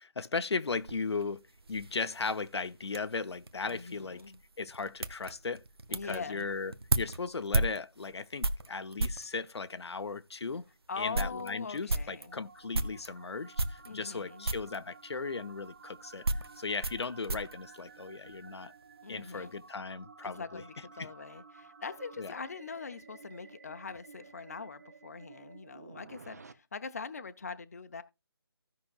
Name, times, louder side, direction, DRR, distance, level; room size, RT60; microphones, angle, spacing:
voice 1, 0.0-4.2 4.6-5.6 5.9-10.7 11.0-16.3 16.6-18.7 19.1-20.6 21.0-21.1 22.2-22.3, left 4 dB, 80° left, 0.7 m, -37 dB
sound 1, 0.7-9.3 10.1-10.2 10.6-10.7 10.9-13.1 13.5-14.2 14.4-14.8 15.6-18.6 18.8-19.4, right 2 dB, 65° right, 0.9 m, -35 dB
voice 2, 3.7-4.4 5.9-6.5 10.9-12.4 13.8-14.5 19.0-19.6 20.2-28.0, left 5 dB, 35° left, 0.6 m, -42 dB
sound 2, 11.4-26.5, right 5 dB, 40° right, 0.6 m, -54 dB
16.0 x 5.8 x 2.4 m
figure-of-eight pair, 170°, 14 cm